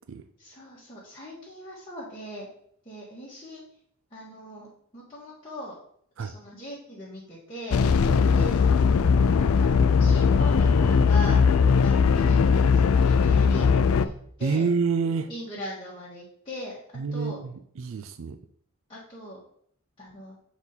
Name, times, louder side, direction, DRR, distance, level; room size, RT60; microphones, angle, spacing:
voice 1, 0.4-2.5 2.8-3.6 4.1-5.8 6.2-7.8 8.3-8.6 9.6-11.4 11.8-14.1 14.4-14.7 15.3-16.8 17.1-17.4 18.9-19.4 20.0-20.3, left 1 dB, 25° left, -8 dB, 1.5 m, -40 dB
sound 1, 7.7-14.1, left 5 dB, 85° left, 0.4 m, -20 dB
voice 2, 14.4-15.3 17.0-18.4, right 5 dB, 65° right, 10 dB, 0.4 m, -27 dB
7.1 x 4.1 x 4.0 m, 0.64 s
head